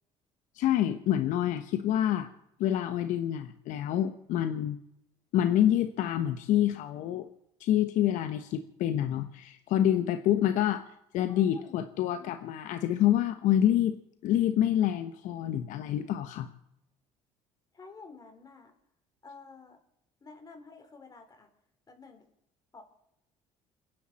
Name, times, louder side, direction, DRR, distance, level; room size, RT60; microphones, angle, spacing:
voice 1, 0.5-2.3 2.6-4.8 5.3-7.3 7.6-10.8 11.1-14.0 14.2-16.5, left 11 dB, 70° left, 9 dB, 1.1 m, -27 dB
voice 2, 11.3-12.3 17.7-18.7 19.2-19.8 20.2-21.5 21.9-22.3 22.7-22.8, left 4 dB, 30° left, 5 dB, 4.2 m, -50 dB
29.5 x 10.5 x 4.3 m, 0.82 s
supercardioid pair, 85°, 13 cm